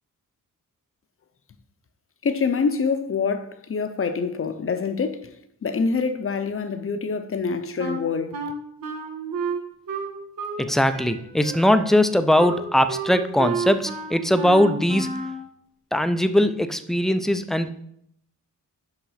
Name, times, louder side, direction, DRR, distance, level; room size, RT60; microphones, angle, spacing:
voice 1, 2.2-5.3 5.6-8.4, left 5 dB, 40° left, 0.6 m, -25 dB
Wind instrument woodwind instrument, 7.8-10.7 10.9-15.4, right 4 dB, 85° right, 1.4 m, -31 dB
voice 2, 10.6-15.2 15.9-17.7, left 1 dB, ahead, 0.3 m, -20 dB
5.9 x 5.7 x 5.6 m
wide cardioid pair, 160°, 34 cm